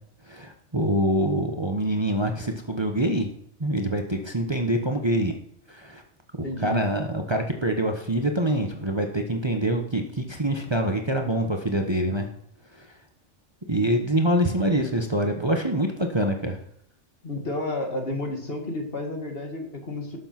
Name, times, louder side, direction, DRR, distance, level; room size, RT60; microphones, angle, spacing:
voice 1, 0.3-3.3 3.6-5.3 5.7-6.0 6.6-12.3 13.7-16.6, right 1 dB, 25° right, 4 dB, 1.2 m, -25 dB
voice 2, 6.4-6.8 17.2-20.2, left 2 dB, 55° left, 3 dB, 2.5 m, -31 dB
18.0 x 7.2 x 6.0 m, 0.69 s
omnidirectional pair, 1.2 m